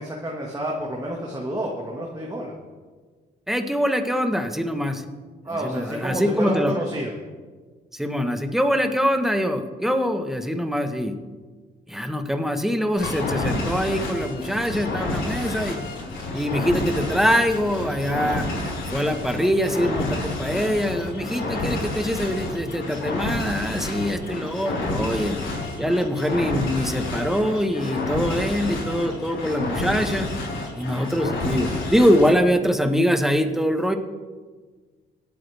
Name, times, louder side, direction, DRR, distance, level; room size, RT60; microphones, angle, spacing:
voice 1, 0.0-2.5 5.4-7.1, right 1 dB, 20° right, -2 dB, 1.9 m, -29 dB
voice 2, 3.5-5.0 5.6-6.7 7.9-11.1 11.9-15.8 16.3-18.5 18.9-25.4 25.8-30.3 30.7-34.0, equal, ahead, 6 dB, 1.3 m, -23 dB
sound 1, 13.0-32.3, left 2 dB, 70° left, 4.6 m, -29 dB
25.0 x 8.6 x 3.5 m, 1.4 s
cardioid pair, 90°, 20 cm